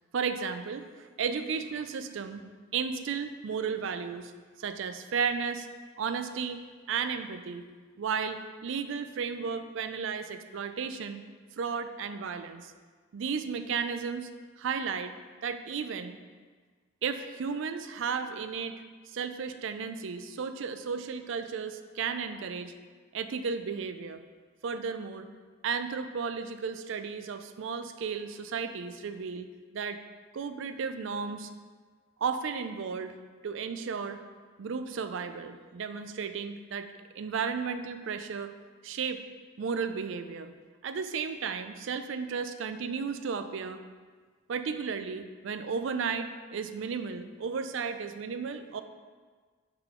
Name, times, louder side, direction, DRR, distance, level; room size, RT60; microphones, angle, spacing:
voice 1, 0.1-2.4 2.7-4.3 4.6-5.7 6.0-6.6 6.9-7.6 8.0-11.2 11.6-12.7 13.1-14.3 14.6-15.1 15.4-16.1 17.0-22.7 23.1-24.2 24.6-25.3 25.6-29.5 29.7-30.0 30.3-31.5 32.2-33.2 33.4-34.2 34.6-36.9 37.2-38.5 38.8-39.2 39.6-40.5 40.8-43.8 44.5-48.8, right 6 dB, 65° right, 9 dB, 0.4 m, -34 dB
5.8 x 3.8 x 4.4 m, 1.5 s
head